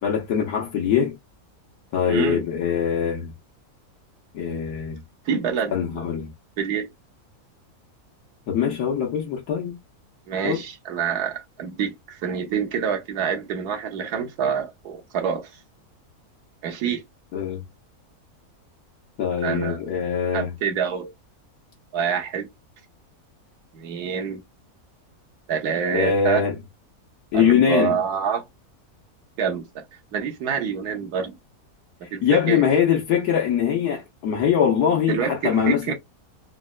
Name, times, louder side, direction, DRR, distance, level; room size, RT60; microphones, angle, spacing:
voice 1, 0.0-1.2 1.9-3.3 4.3-5.0 5.7-6.3 8.5-9.8 10.4-10.6 17.3-17.6 19.2-20.5 25.9-26.6 27.3-28.0 32.2-35.9, left 8 dB, 85° left, 1.3 m, -22 dB
voice 2, 2.0-2.4 5.3-6.0 6.6-6.9 10.3-15.5 16.6-17.0 19.4-19.8 20.3-21.1 21.9-22.5 23.7-24.4 25.5-26.4 27.3-28.4 29.4-29.8 30.1-31.4 32.1-32.6 35.1-35.9, right 7 dB, 85° right, 1.3 m, -26 dB
4.0 x 2.1 x 2.2 m
omnidirectional pair, 1.6 m